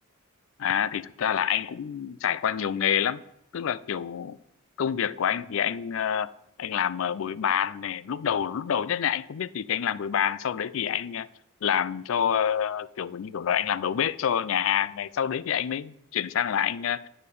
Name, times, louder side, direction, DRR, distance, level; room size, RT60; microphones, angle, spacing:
voice 1, 0.6-3.2 3.5-4.4 4.8-6.3 6.6-11.3 11.6-17.0, left 8 dB, 65° left, 0.4 m, -27 dB
8.7 x 6.6 x 5.3 m
head